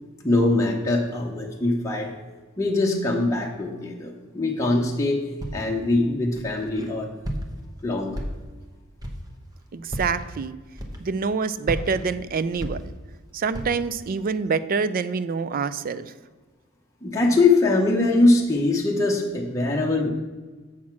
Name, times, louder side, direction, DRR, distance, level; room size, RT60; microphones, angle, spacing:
voice 1, 0.2-2.1 2.6-5.2 5.5-7.1 7.8-8.2 17.0-20.1, left 2 dB, 15° left, -2 dB, 0.8 m, -22 dB
Walk footsteps, 5.4-5.8 6.4-6.9 7.2-7.7 8.1-8.6 9.0-9.3 9.8-10.3 10.8-11.3 11.6-13.2 13.5-13.9, equal, 20° right, 1.0 m, -33 dB
voice 2, 9.7-10.5 11.0-12.9 13.3-16.1, right 5 dB, 45° right, 15 dB, 0.4 m, -26 dB
7.4 x 6.4 x 5.9 m, 1.3 s
head